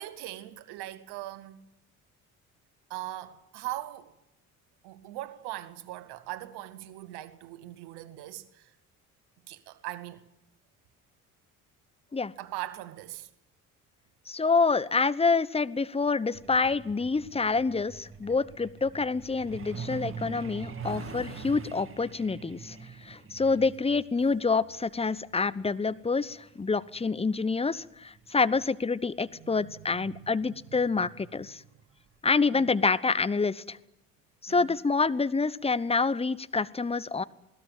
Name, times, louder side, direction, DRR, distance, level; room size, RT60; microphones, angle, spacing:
voice 1, 0.0-1.6 2.9-4.1 4.8-8.7 9.5-10.2 12.4-13.3 23.4-23.7 29.4-30.8 32.5-32.7 34.5-34.7, right 15 dB, 65° right, 1.6 m, -41 dB
voice 2, 14.3-22.8 23.0-31.6 32.2-33.8 34.4-37.2, left 4 dB, 15° left, 1.0 m, -27 dB
Truck, 16.3-28.6 29.9-30.0 30.4-30.6 31.0-31.3 31.6-31.7 32.2-32.3, right 5 dB, 30° right, 2.4 m, -44 dB
20.5 x 18.0 x 9.0 m
figure-of-eight pair, 50°, 43 cm